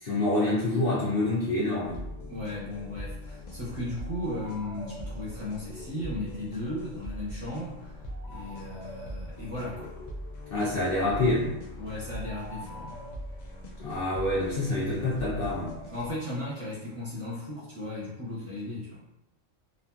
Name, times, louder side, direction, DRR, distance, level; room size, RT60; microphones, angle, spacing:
voice 1, 0.0-2.0 10.5-11.5 13.8-15.7, left 2 dB, 55° left, -8 dB, 0.7 m, -27 dB
sound 1, 1.8-16.1, left 1 dB, 85° left, 0.3 m, -41 dB
voice 2, 2.3-8.0 8.3-10.0 10.6-10.8 11.8-13.0 15.9-19.0, left 1 dB, 30° right, -9 dB, 0.8 m, -36 dB
2.7 x 2.5 x 2.3 m, 0.88 s
omnidirectional pair, 1.4 m